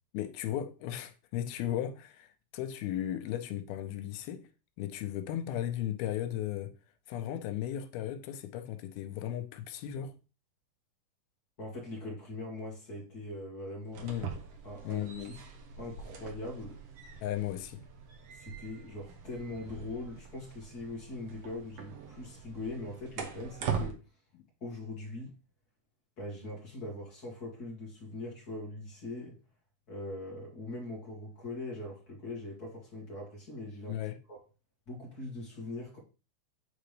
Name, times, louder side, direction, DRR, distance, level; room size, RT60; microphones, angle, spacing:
voice 1, 0.1-4.5 4.8-6.7 7.1-10.1 14.0-14.3 14.9-15.4 17.2-17.8 33.9-34.2, left 11 dB, 85° left, 2.5 m, -36 dB
voice 2, 11.6-14.2 14.6-15.4 15.8-16.8 18.3-24.0 24.6-25.3 26.2-29.4 29.9-34.0 34.3-34.4 34.9-36.0, left 2 dB, 35° left, 1.7 m, -41 dB
sound 1, 13.8-23.9, right 6 dB, 70° right, 1.5 m, -42 dB
9.0 x 3.8 x 3.3 m
omnidirectional pair, 4.3 m